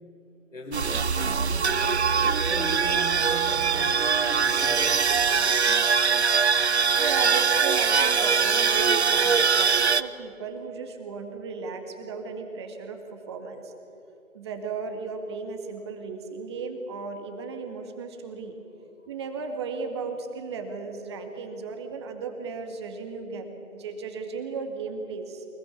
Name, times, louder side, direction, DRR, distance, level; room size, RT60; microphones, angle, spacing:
voice 1, 0.5-1.1 1.5-2.2 2.4-5.9 6.5-6.6 19.0-19.1, left 1 dB, 65° left, 0 dB, 3.3 m, -38 dB
sound 1, 0.7-10.0, right 6 dB, 55° right, 0.9 m, -22 dB
voice 2, 7.0-13.7 14.3-18.5 19.1-25.5, right 4 dB, 20° right, 5 dB, 1.9 m, -35 dB
24.5 x 21.0 x 8.5 m, 2.9 s
figure-of-eight pair, 155°, 40 cm